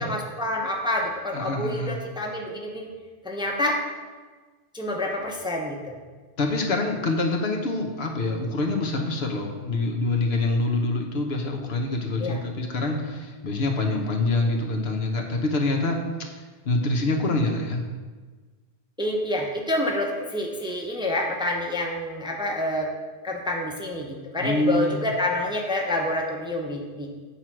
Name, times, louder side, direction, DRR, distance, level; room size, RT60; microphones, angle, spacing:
voice 1, 0.0-2.9 3.2-3.8 4.7-6.0 12.2-12.4 19.0-22.9 23.2-27.1, left 1 dB, 5° right, 0 dB, 0.8 m, -28 dB
voice 2, 1.3-2.0 6.4-16.4 16.6-17.9 24.4-25.1, left 2 dB, 70° left, 2 dB, 1.2 m, -26 dB
8.6 x 4.5 x 6.1 m, 1.4 s
omnidirectional pair, 1.1 m